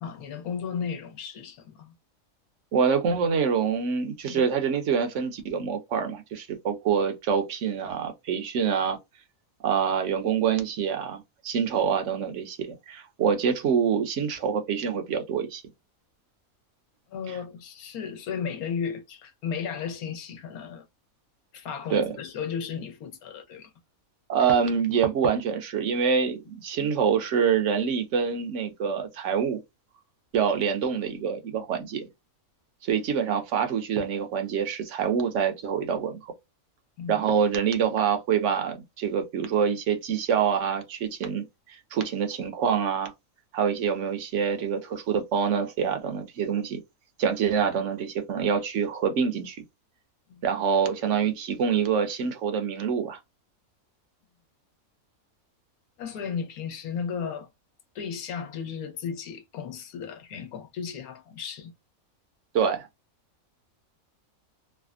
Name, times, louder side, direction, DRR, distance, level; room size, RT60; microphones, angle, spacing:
voice 1, 0.0-1.9 4.3-4.5 17.1-20.8 21.5-23.7 37.0-37.2 50.3-50.4 56.0-57.5 57.9-61.7, left 7 dB, 85° left, 1.2 m, -34 dB
voice 2, 2.7-9.0 9.6-15.6 17.3-17.4 21.9-22.1 24.3-29.6 30.3-32.0 32.8-36.3 37.1-43.1 43.5-46.8 47.2-49.6 50.4-53.2 62.5-62.9, right 7 dB, 60° right, 1.0 m, -26 dB
3.3 x 2.1 x 2.3 m
omnidirectional pair, 1.5 m